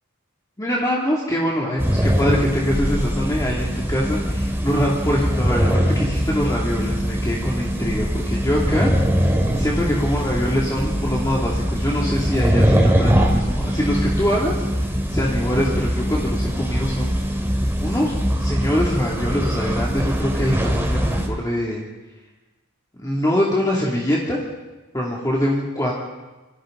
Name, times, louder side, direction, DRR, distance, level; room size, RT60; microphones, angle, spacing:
voice 1, 0.6-8.9 9.5-14.6 15.1-17.1 17.8-18.1 18.4-21.8 23.0-24.4 24.9-25.9, equal, 15° left, -4 dB, 2.6 m, -23 dB
sound 1, 1.8-21.3, equal, 10° right, 2.7 m, -22 dB
27.5 x 24.5 x 3.9 m, 1.2 s
head